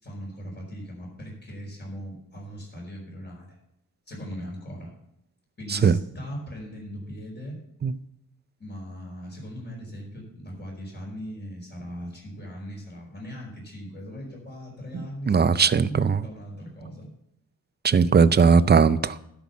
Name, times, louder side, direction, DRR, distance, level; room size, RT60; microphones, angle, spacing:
voice 1, 0.0-3.6 4.1-4.9 5.6-7.6 8.6-17.1, equal, 30° left, 5.0 m, -39 dB
voice 2, 14.9-16.2 17.8-19.3, right 5 dB, 30° right, 0.5 m, -19 dB
12.0 x 6.0 x 7.1 m
wide cardioid pair, 115°, 35 cm